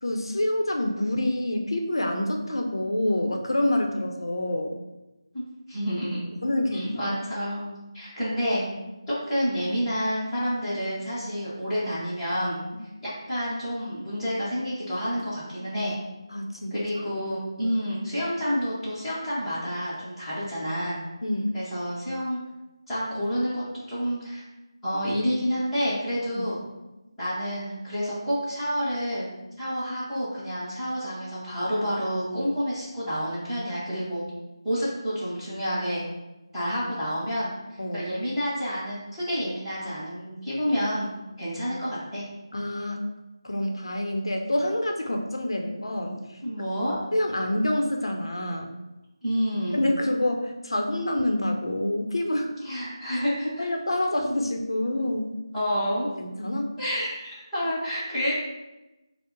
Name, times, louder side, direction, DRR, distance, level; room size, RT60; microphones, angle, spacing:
voice 1, 0.0-4.7 6.4-7.2 16.3-16.8 21.2-21.6 26.3-26.5 37.8-38.1 42.5-43.1 43.4-46.3 47.1-48.7 49.7-52.5 53.6-55.4 56.2-56.7, left 1 dB, 65° left, 3 dB, 0.6 m, -27 dB
voice 2, 5.7-6.3 6.7-8.6 9.1-12.6 13.0-15.9 16.7-21.0 21.5-22.4 22.9-24.4 24.8-26.6 27.2-29.3 29.6-34.2 34.6-36.0 36.5-41.1 41.4-42.2 46.4-47.0 49.2-49.9 52.6-53.6 55.5-56.1 56.8-58.3, equal, ahead, -17 dB, 0.8 m, -29 dB
5.5 x 2.1 x 3.8 m, 1.0 s
figure-of-eight pair, 175°, 3 cm